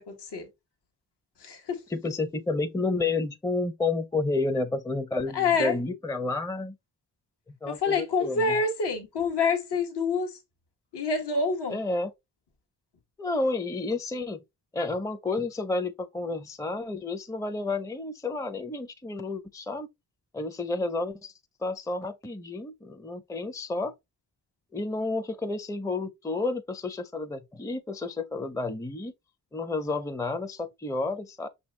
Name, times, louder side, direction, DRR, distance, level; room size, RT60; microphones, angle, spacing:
voice 1, 0.1-0.5 1.4-1.8 5.3-5.7 7.7-10.4 10.9-11.8, left 4 dB, 70° left, 1.2 m, -27 dB
voice 2, 1.9-6.8 7.5-8.6 11.7-12.1 13.2-14.4 14.7-19.9 20.3-21.3 21.6-23.9 24.7-29.1 29.5-31.5, left 3 dB, 10° left, 0.5 m, -31 dB
5.8 x 2.7 x 3.1 m
supercardioid pair, 40°, 41 cm